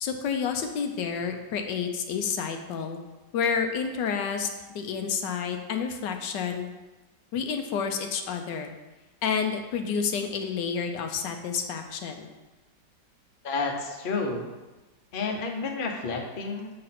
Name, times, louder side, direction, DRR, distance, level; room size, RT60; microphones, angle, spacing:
voice 1, 0.0-3.0 3.3-4.5 4.7-6.7 7.3-8.7 9.2-12.3, left 6 dB, 80° left, 5 dB, 1.3 m, -29 dB
voice 2, 13.4-14.5 15.1-16.7, left 3 dB, 40° left, 1 dB, 0.9 m, -30 dB
7.6 x 3.9 x 5.8 m, 1.1 s
omnidirectional pair, 1.9 m